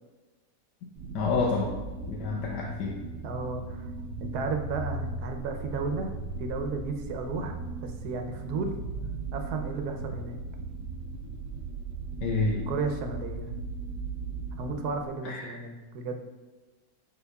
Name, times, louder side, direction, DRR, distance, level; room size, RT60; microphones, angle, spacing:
sound 1, 1.0-15.1, right 3 dB, 85° right, 1.4 m, -37 dB
voice 1, 1.1-1.8 2.1-3.0 12.2-12.7 15.2-15.6, left 4 dB, 80° left, -1 dB, 1.3 m, -28 dB
voice 2, 3.2-3.9 4.2-8.8 9.3-10.4 12.7-13.5 14.6-16.2, right 4 dB, 70° right, 5 dB, 1.2 m, -34 dB
11.0 x 4.0 x 2.3 m, 1.2 s
omnidirectional pair, 1.9 m